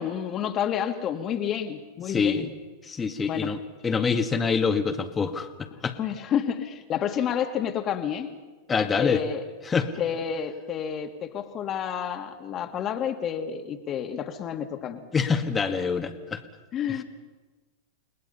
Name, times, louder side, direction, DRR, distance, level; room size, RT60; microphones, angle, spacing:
voice 1, 0.0-2.5 3.3-3.5 5.7-8.3 9.0-9.4 10.0-15.0 16.7-17.0, left 8 dB, 35° left, 6 dB, 2.2 m, -29 dB
voice 2, 2.1-2.5 2.8-6.0 8.7-9.2 9.7-9.9 15.1-16.4, left 5 dB, 20° left, 5 dB, 1.9 m, -26 dB
30.0 x 19.5 x 5.7 m, 1.3 s
hypercardioid pair, 110°, 0 cm